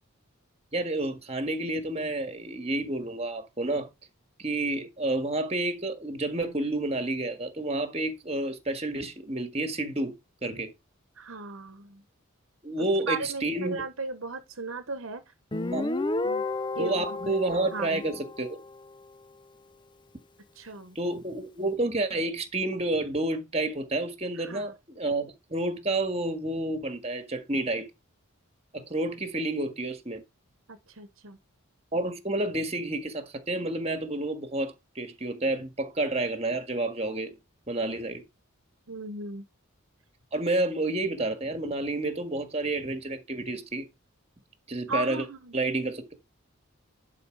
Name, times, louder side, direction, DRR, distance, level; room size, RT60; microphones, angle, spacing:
voice 1, 0.7-3.9 4.4-10.1 10.4-10.7 12.6-13.8 15.7-15.9 16.8-18.6 20.9-27.9 28.7-30.2 31.9-37.3 37.7-38.2 40.3-43.9 44.7-45.2 45.5-46.0, right 2 dB, 30° right, 1.7 m, -30 dB
voice 2, 11.2-12.0 12.8-15.2 16.2-16.4 16.7-17.3 17.7-18.0 20.6-21.0 24.4-24.7 30.7-31.4 38.9-39.5 44.9-45.6, right 3 dB, 65° right, 1.2 m, -36 dB
Guitar, 15.5-19.0, left 2 dB, 20° left, 0.6 m, -32 dB
11.0 x 5.0 x 4.9 m
head